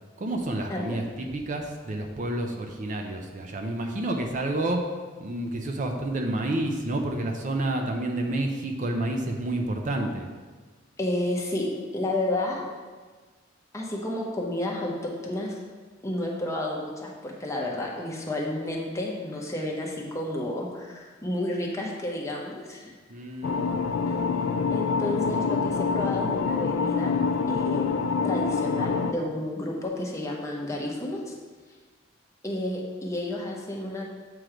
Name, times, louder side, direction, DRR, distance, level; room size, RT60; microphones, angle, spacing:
voice 1, 0.2-10.3 23.1-23.8, right 1 dB, 40° right, 3 dB, 0.5 m, -29 dB
voice 2, 11.0-11.7 11.9-12.6 13.7-15.5 16.0-22.9 24.7-27.2 27.5-27.9 28.2-31.3 32.4-34.0, left 1 dB, 15° left, -2 dB, 0.9 m, -31 dB
sound 1, 23.4-29.1, left 5 dB, 85° left, 0.3 m, -26 dB
7.7 x 3.1 x 4.9 m, 1.4 s
head